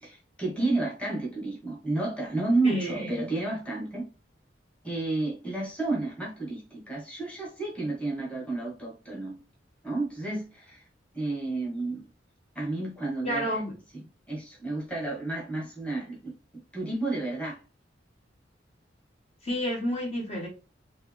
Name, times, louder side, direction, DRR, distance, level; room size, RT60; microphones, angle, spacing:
voice 1, 0.0-4.1 4.8-9.4 9.8-10.8 11.1-12.1 12.5-13.6 13.9-16.3 16.7-17.6, right 2 dB, 5° left, -4 dB, 1.6 m, -31 dB
voice 2, 13.2-13.7 19.4-20.5, equal, 35° left, -2 dB, 1.6 m, -29 dB
4.7 x 2.9 x 3.5 m, 0.33 s
head